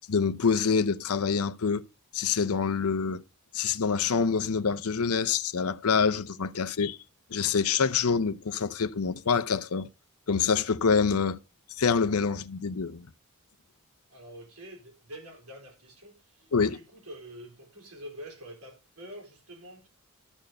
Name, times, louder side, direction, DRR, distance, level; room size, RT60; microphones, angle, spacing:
voice 1, 0.1-1.8 2.1-3.2 3.5-7.0 7.3-9.9 10.3-11.4 11.8-13.1 16.5-16.8, left 5 dB, 85° left, 0.7 m, -26 dB
voice 2, 14.1-19.9, equal, 80° right, 3.8 m, -46 dB
12.5 x 4.3 x 6.7 m
head